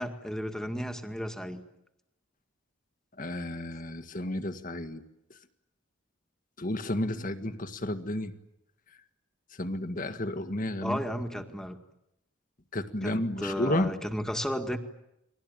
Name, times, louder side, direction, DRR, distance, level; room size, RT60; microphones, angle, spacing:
voice 1, 0.0-1.6 10.8-11.8 13.0-14.8, equal, 5° left, 6 dB, 2.0 m, -33 dB
voice 2, 3.2-5.0 6.6-8.3 9.6-11.0 12.7-13.9, left 1 dB, 40° left, 10 dB, 1.8 m, -31 dB
29.5 x 22.0 x 9.0 m, 0.85 s
head